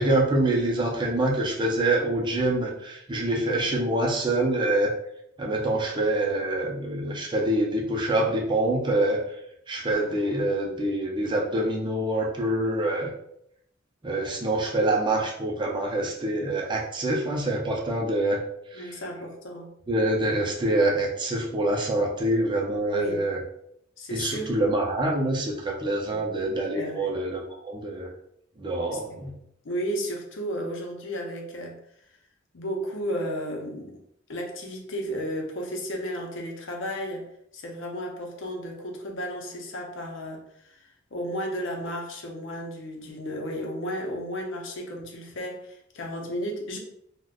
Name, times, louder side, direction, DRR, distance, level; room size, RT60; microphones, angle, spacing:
voice 1, 0.0-4.9 5.4-9.2 9.7-13.1 14.0-18.4 19.9-23.4 24.1-28.1 28.6-29.3, right 1 dB, 25° right, -1 dB, 0.5 m, -25 dB
voice 2, 18.7-19.7 22.9-23.2 24.0-24.6 26.0-26.2 26.7-27.1 28.9-29.0 29.6-31.8 32.5-34.0 34.3-37.2 37.5-46.8, equal, 65° left, 1 dB, 0.7 m, -33 dB
2.4 x 2.1 x 3.5 m, 0.72 s
head